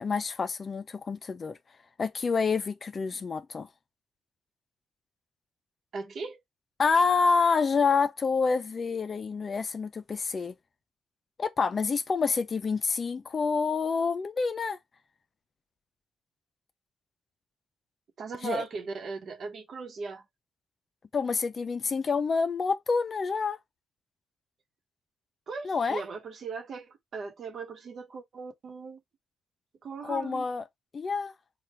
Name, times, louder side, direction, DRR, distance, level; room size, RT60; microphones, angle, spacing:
voice 1, 0.0-1.6 2.0-3.7 6.8-10.5 11.4-14.8 18.4-18.6 21.1-23.6 25.6-26.0 30.0-30.6 30.9-31.3, left 5 dB, 40° left, 0.6 m, -27 dB
voice 2, 5.9-6.4 18.2-20.2 25.5-29.0 29.8-30.5, right 4 dB, 55° right, 1.1 m, -38 dB
3.6 x 2.4 x 4.3 m
cardioid pair, 85°, 0 cm